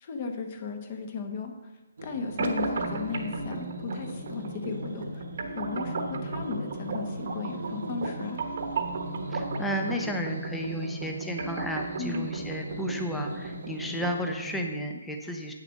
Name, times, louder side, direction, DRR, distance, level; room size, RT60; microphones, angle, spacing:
voice 1, 0.0-1.5 2.0-5.2 5.5-8.4 12.0-12.3, left 5 dB, 25° left, 5 dB, 1.0 m, -35 dB
sound 1, 2.0-14.6, right 1 dB, 75° right, 1.2 m, -39 dB
sound 2, 2.4-14.4, right 3 dB, 45° right, 1.1 m, -35 dB
voice 2, 9.3-15.5, equal, 5° left, 2 dB, 0.6 m, -33 dB
8.5 x 6.5 x 6.4 m, 1.1 s
hypercardioid pair, 175°, 0 cm